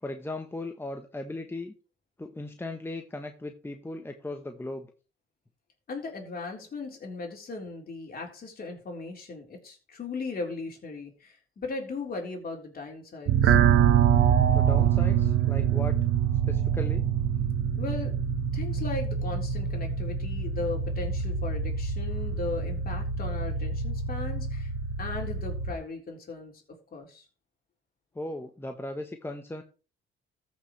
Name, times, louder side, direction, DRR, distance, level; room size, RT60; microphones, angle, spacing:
voice 1, 0.0-1.7 2.2-4.9 14.5-16.0 16.5-17.1 28.1-29.6, left 2 dB, 10° left, 5 dB, 1.1 m, -37 dB
voice 2, 5.9-13.6 17.7-18.2 18.5-24.7 25.0-26.5 26.9-27.2, left 3 dB, 50° left, 1 dB, 3.9 m, -37 dB
sound 1, 13.3-25.7, right 8 dB, 80° right, 1.2 m, -25 dB
14.0 x 6.3 x 3.2 m, 0.35 s
cardioid pair, 90°, 20 cm